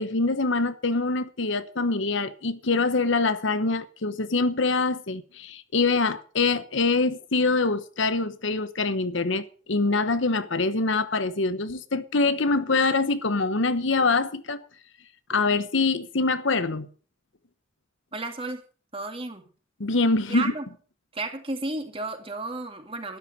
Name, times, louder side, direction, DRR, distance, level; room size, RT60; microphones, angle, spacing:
voice 1, 0.0-14.6 15.3-16.9 19.8-20.5, left 3 dB, 65° left, 1.0 m, -24 dB
voice 2, 18.1-18.6 18.9-19.4 20.3-20.7 21.1-23.2, right 2 dB, 25° right, 2.2 m, -33 dB
12.5 x 11.5 x 6.5 m
head